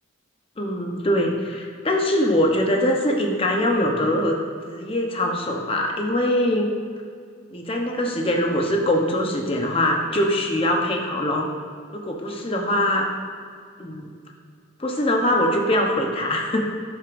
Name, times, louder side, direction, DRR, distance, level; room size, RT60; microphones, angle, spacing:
voice 1, 0.6-4.4 4.7-6.7 7.5-11.5 11.9-13.1 13.8-14.1 14.8-16.6, left 1 dB, 25° left, 1 dB, 0.8 m, -22 dB
9.6 x 7.8 x 2.6 m, 2.2 s
head